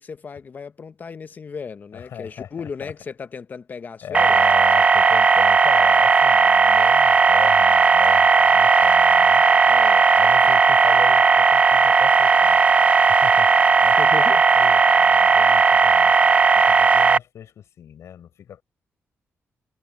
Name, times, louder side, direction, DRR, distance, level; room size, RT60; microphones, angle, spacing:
voice 1, 0.0-4.4 9.7-10.1 14.0-14.4, left 5 dB, 35° left, 0.7 m, -35 dB
voice 2, 1.9-2.9 4.0-9.4 10.1-12.6 13.1-13.5 13.8-16.1 16.5-18.6, left 9 dB, 70° left, 5.0 m, -38 dB
sound 1, 4.1-17.2, right 5 dB, 25° right, 0.3 m, -15 dB
wide cardioid pair, 145°, 5 cm